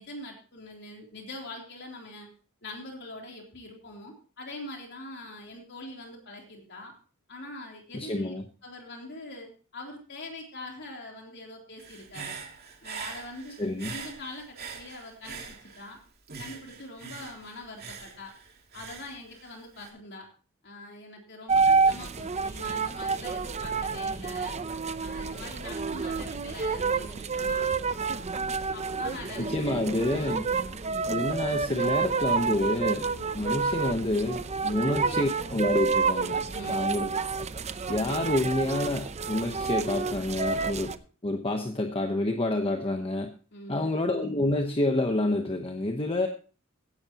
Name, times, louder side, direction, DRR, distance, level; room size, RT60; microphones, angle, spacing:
voice 1, 0.0-2.3 2.6-6.9 7.3-8.3 8.6-12.3 12.8-13.5 13.9-16.0 16.4-18.3 18.7-20.3 20.6-24.6 25.0-27.9 28.7-29.7 30.1-30.4 31.8-31.9 33.1-33.3 34.6-34.9 35.1-35.2 36.5-36.9 43.5-43.9, left 2 dB, 55° left, 1 dB, 3.3 m, -43 dB
voice 2, 7.9-8.4 13.6-13.9 29.4-30.5 31.1-33.1 33.3-36.4 36.7-37.1 37.9-40.9 41.2-43.3 43.7-46.3, left 1 dB, 25° left, 4 dB, 1.0 m, -28 dB
Human voice / Breathing, 11.8-16.0 16.3-19.9, right 6 dB, 50° right, 2.6 m, -43 dB
sound 1, 21.5-41.0, right 4 dB, 30° right, 0.6 m, -29 dB
16.5 x 10.5 x 2.9 m, 0.37 s
head